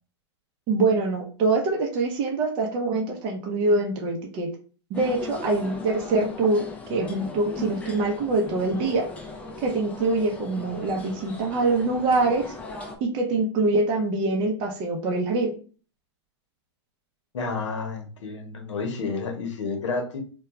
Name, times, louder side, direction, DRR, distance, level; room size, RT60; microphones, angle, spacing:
voice 1, 0.7-4.5 4.9-9.1 9.6-12.5 13.0-15.5, right 3 dB, 35° right, 2 dB, 0.6 m, -24 dB
sound 1, 4.9-13.0, left 3 dB, 10° left, 0.3 m, -38 dB
voice 2, 17.3-20.2, left 4 dB, 90° left, 4 dB, 0.8 m, -30 dB
2.3 x 2.2 x 2.9 m, 0.39 s
hypercardioid pair, 140°, 15 cm